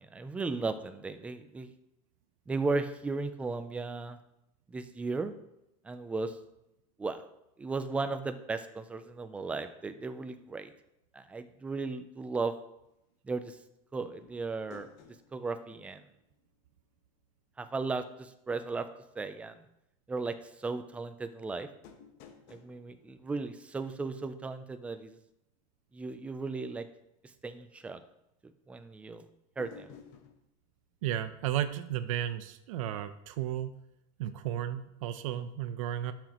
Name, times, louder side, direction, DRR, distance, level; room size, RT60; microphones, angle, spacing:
voice 1, 0.0-1.7 2.5-4.2 4.7-5.3 5.8-6.4 7.0-7.2 7.6-10.7 11.1-12.5 13.3-13.6 13.9-14.9 15.3-16.0 17.6-18.9 19.2-19.6 20.1-21.7 22.5-25.2 25.9-26.9 27.4-28.0 28.7-29.3 29.6-30.0, right 3 dB, 5° right, 9 dB, 0.4 m, -35 dB
sound 1, 14.2-16.9 17.1-17.2 21.8-24.3 29.6-30.4, left 6 dB, 50° left, 1.0 m, -55 dB
voice 2, 31.0-33.7 34.2-36.1, right 11 dB, 80° right, 11 dB, 0.7 m, -33 dB
12.0 x 6.0 x 3.0 m, 0.85 s
supercardioid pair, 165°, 17 cm